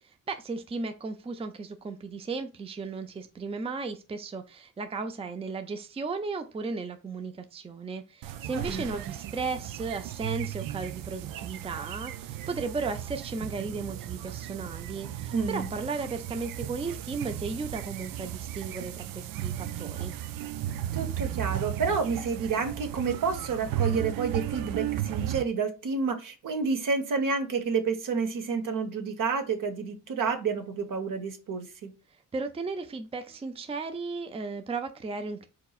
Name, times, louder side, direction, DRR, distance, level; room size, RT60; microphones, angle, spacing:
voice 1, 0.0-20.1 32.1-35.5, right 4 dB, 20° right, 7 dB, 0.5 m, -35 dB
sound 1, 8.2-25.4, right 11 dB, 85° right, 0.5 m, -35 dB
voice 2, 8.7-9.1 15.3-15.7 20.9-31.9, right 5 dB, 70° right, 5 dB, 1.1 m, -29 dB
4.7 x 4.0 x 2.4 m, 0.30 s
cardioid pair, 95°, 33 cm